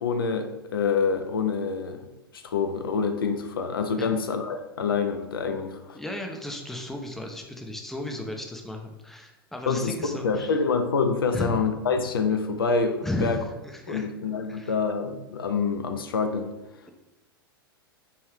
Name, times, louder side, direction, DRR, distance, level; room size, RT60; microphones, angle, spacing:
voice 1, 0.0-2.1 2.3-6.0 9.7-13.4 13.9-16.5, left 5 dB, 70° left, 7 dB, 0.5 m, -26 dB
voice 2, 5.9-10.5 11.3-11.6 13.0-14.1 14.5-14.7, left 1 dB, 5° left, 2 dB, 0.5 m, -34 dB
4.7 x 2.6 x 3.3 m, 0.98 s
figure-of-eight pair, 95°, 12 cm